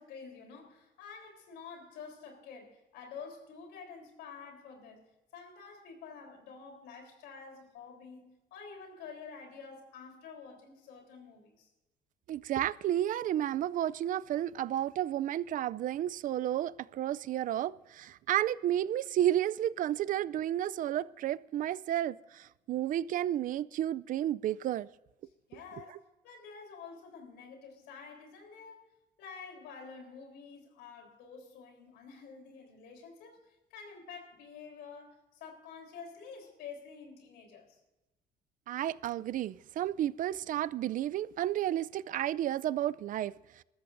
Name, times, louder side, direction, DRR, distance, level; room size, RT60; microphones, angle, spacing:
voice 1, 0.0-11.7 25.5-28.8 29.2-37.8, left 5 dB, 85° left, 3.7 m, -49 dB
voice 2, 12.3-24.9 38.7-43.3, right 12 dB, 55° right, 0.4 m, -32 dB
21.5 x 13.5 x 2.6 m
cardioid pair, 110°, 17 cm